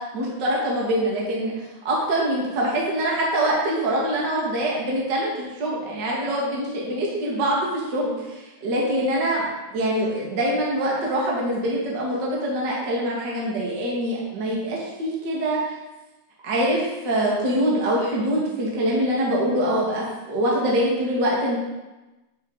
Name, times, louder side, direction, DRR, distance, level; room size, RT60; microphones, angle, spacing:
voice 1, 0.0-1.5 1.8-15.6 16.4-21.6, right 1 dB, 60° right, -4 dB, 1.1 m, -24 dB
10.5 x 6.1 x 4.0 m, 1.1 s
omnidirectional pair, 5.4 m